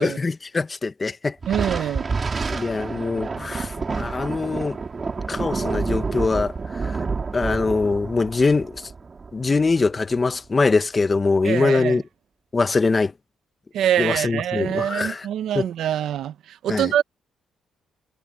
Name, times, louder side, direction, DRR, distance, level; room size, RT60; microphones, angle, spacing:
voice 1, 0.0-1.3 2.5-4.8 5.3-6.5 6.8-6.9 7.3-8.8 9.3-12.0 12.5-13.1 14.0-15.3 15.5-15.6 16.7-16.9, left 4 dB, 30° left, 1.3 m, -22 dB
Thunder, 1.4-10.2, right 4 dB, 35° right, 3.5 m, -29 dB
voice 2, 1.5-2.1 11.4-12.0 13.7-17.0, right 10 dB, 75° right, 1.0 m, -24 dB
cardioid pair, 90°, 0 cm